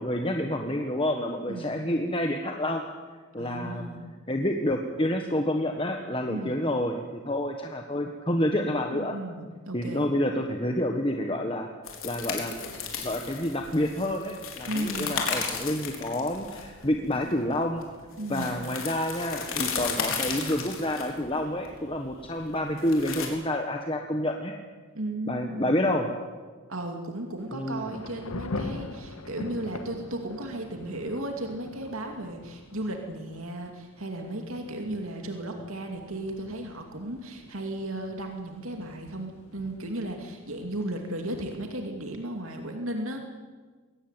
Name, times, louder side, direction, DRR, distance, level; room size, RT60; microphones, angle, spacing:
voice 1, 0.0-2.8 3.3-3.9 4.3-9.1 9.7-11.7 12.0-12.6 13.0-17.9 18.3-24.5 25.3-26.1 27.5-27.9, left 1 dB, 25° left, 3 dB, 1.4 m, -28 dB
voice 2, 3.4-4.0 6.3-6.7 8.9-10.1 14.7-15.2 18.2-18.6 24.9-26.0 26.7-43.2, right 1 dB, 70° right, 3 dB, 2.6 m, -35 dB
sound 1, 11.8-23.3, left 6 dB, 70° left, 4.2 m, -34 dB
Thunder / Rain, 27.4-41.8, left 2 dB, 85° left, 1.6 m, -43 dB
22.0 x 17.5 x 9.2 m, 1.4 s
head